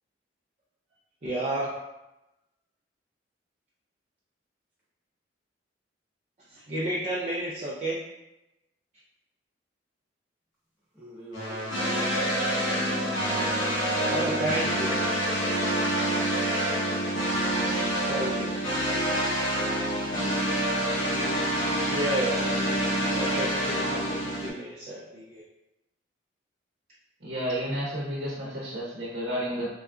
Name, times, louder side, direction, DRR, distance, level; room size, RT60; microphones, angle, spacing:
voice 1, 1.2-1.7 6.5-8.0 14.1-15.0 18.1-18.5 21.9-22.4 23.1-25.4, right 1 dB, 35° right, -7 dB, 0.5 m, -31 dB
voice 2, 10.9-13.0 19.0-20.2, right 1 dB, 10° right, -9 dB, 1.2 m, -45 dB
sound 1, 11.3-24.5, right 1 dB, 90° left, 1.0 m, -27 dB
voice 3, 27.2-29.7, equal, 70° right, -8 dB, 0.9 m, -31 dB
3.8 x 2.4 x 2.3 m, 0.94 s
head